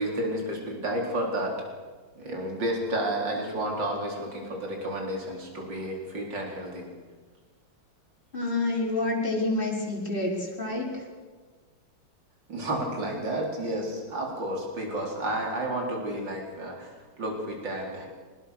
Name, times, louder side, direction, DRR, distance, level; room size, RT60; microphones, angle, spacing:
voice 1, 0.0-1.5 2.2-6.9 12.5-16.9 17.2-18.1, right 1 dB, 60° right, 0 dB, 4.7 m, -31 dB
voice 2, 8.3-10.9, left 2 dB, 25° left, -4 dB, 5.3 m, -28 dB
24.5 x 20.0 x 6.6 m, 1.4 s
omnidirectional pair, 2.3 m